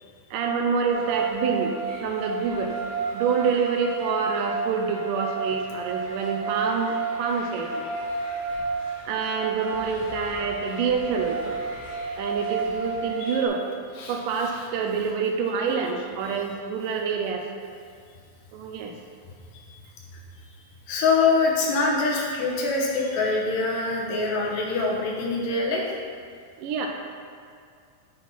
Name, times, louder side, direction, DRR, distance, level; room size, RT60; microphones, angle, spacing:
voice 1, 0.3-2.7 3.1-7.9 9.1-11.6 12.2-13.7 14.1-17.4 18.5-18.9 26.6-26.9, right 5 dB, 80° right, 3 dB, 2.2 m, -27 dB
sound 1, 0.9-13.5, right 4 dB, 30° left, 0.9 m, -32 dB
voice 2, 14.0-14.5 19.5-19.8 20.1-20.2 20.9-26.0, left 3 dB, 75° left, -3 dB, 2.6 m, -25 dB
10.5 x 4.3 x 4.2 m, 2.3 s
omnidirectional pair, 4.1 m